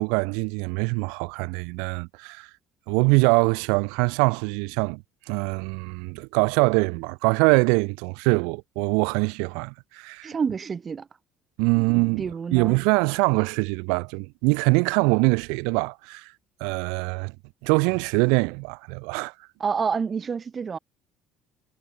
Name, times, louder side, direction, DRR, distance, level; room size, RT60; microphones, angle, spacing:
voice 1, 0.0-2.5 2.9-5.0 5.3-10.3 11.6-12.2 12.5-16.3 16.6-17.3 17.6-19.3, right 35 dB, 85° right, 0.3 m, -23 dB
voice 2, 10.2-11.1 11.8-12.8 19.6-20.8, right 6 dB, 35° right, 0.9 m, -28 dB
supercardioid pair, 85°, 0 cm